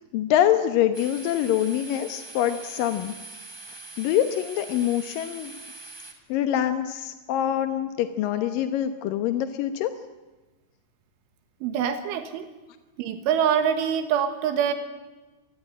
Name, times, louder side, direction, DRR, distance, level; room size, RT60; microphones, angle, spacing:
voice 1, 0.1-3.1 4.0-5.6 6.3-9.9, left 11 dB, 70° left, 8 dB, 2.1 m, -25 dB
sound 1, 0.9-6.1, right 3 dB, 10° left, 1.6 m, -43 dB
voice 2, 11.6-12.5 13.0-14.7, right 8 dB, 85° right, 8 dB, 4.0 m, -24 dB
27.0 x 20.0 x 8.9 m, 1.2 s
omnidirectional pair, 5.4 m